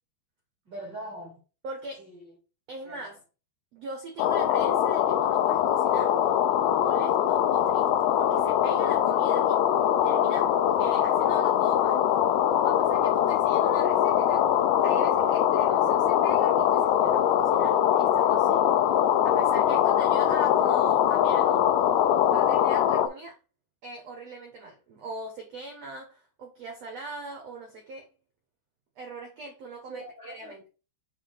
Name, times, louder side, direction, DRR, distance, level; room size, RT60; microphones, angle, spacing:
voice 1, 0.6-1.4 2.0-2.3 2.8-3.0 29.9-30.7, right 1 dB, 60° right, 1.1 m, -42 dB
voice 2, 1.6-2.1 2.7-3.2 3.7-6.2 6.7-7.9 8.2-9.6 10.0-12.0 12.6-14.4 14.8-18.7 19.2-21.6 22.3-23.4 23.8-28.1 28.9-30.7, right 2 dB, 75° right, 1.5 m, -41 dB
sound 1, 4.2-23.1, left 10 dB, 80° left, 2.4 m, -22 dB
7.3 x 3.8 x 4.0 m
omnidirectional pair, 5.0 m